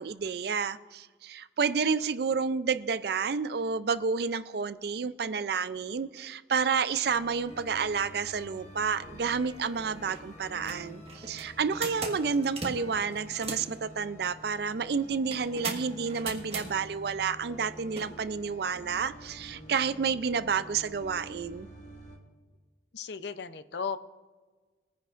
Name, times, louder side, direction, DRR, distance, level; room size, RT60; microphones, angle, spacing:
voice 1, 0.0-21.7, right 5 dB, 55° right, 14 dB, 0.4 m, -30 dB
sound 1, 7.1-22.2, equal, 40° left, 1.6 m, -48 dB
sound 2, 9.5-9.6 10.0-10.2 10.5-13.8 15.3-16.7 17.9-18.1, right 3 dB, 35° right, 1.5 m, -38 dB
voice 2, 22.9-24.0, left 6 dB, 65° left, 12 dB, 0.5 m, -35 dB
21.5 x 10.0 x 2.5 m, 1.4 s
head